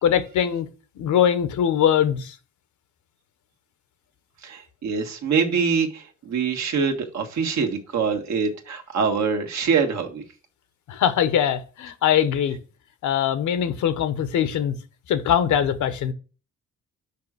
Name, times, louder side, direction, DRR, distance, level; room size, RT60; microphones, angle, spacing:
voice 1, 0.0-0.7 1.0-2.3 10.9-12.6 13.0-14.7 15.1-16.1, left 9 dB, 75° left, 1.0 m, -22 dB
voice 2, 4.4-10.2, right 5 dB, 65° right, 1.6 m, -24 dB
5.8 x 5.0 x 6.1 m
cardioid pair, 90°, 30 cm